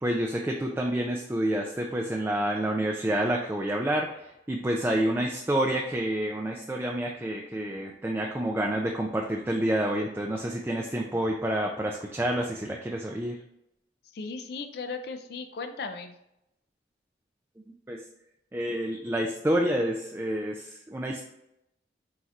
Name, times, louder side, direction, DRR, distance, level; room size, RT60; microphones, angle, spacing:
voice 1, 0.0-13.3 17.9-18.0 18.5-21.2, right 1 dB, 10° right, 0 dB, 0.3 m, -28 dB
voice 2, 4.9-5.3 14.1-16.2, left 4 dB, 60° left, 6 dB, 0.4 m, -37 dB
4.5 x 4.1 x 2.4 m, 0.83 s
head